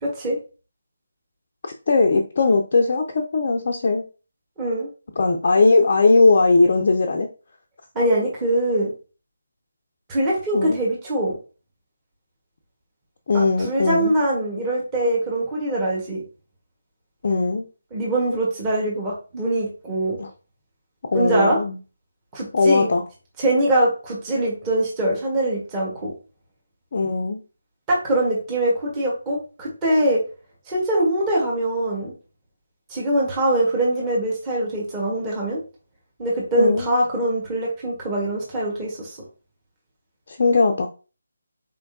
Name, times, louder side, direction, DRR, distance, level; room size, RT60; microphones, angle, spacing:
voice 1, 0.0-0.4 4.6-4.9 7.9-8.9 10.1-11.4 13.3-16.2 17.9-20.2 21.1-21.6 22.3-22.9 23.4-26.1 27.9-30.2 30.7-32.1 32.9-35.6 36.2-39.2, right 1 dB, 15° right, -4 dB, 1.4 m, -23 dB
voice 2, 1.9-4.0 5.2-7.3 10.5-10.8 13.3-14.1 17.2-17.7 20.2-20.3 21.1-21.8 22.5-23.0 26.9-27.4 36.6-36.9 40.3-40.9, left 3 dB, 40° left, 3 dB, 0.5 m, -19 dB
4.3 x 3.4 x 2.6 m, 0.34 s
figure-of-eight pair, 150°, 0 cm